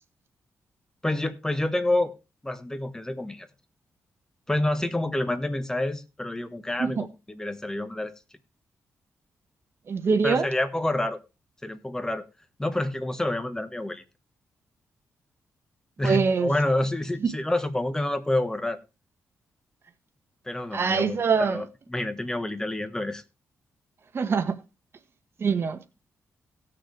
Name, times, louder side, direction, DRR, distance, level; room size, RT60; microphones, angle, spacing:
voice 1, 1.0-2.1 2.4-3.5 4.5-7.0 7.3-8.1 10.2-11.2 11.6-12.2 12.6-14.0 16.0-18.8 20.5-23.2, left 1 dB, 10° left, 1.3 m, -28 dB
voice 2, 9.9-10.5 16.0-16.5 17.2-17.3 20.7-21.6 24.1-24.6 25.4-25.8, right 5 dB, 50° right, 1.4 m, -24 dB
17.5 x 6.7 x 3.3 m
cardioid pair, 95°, 5 cm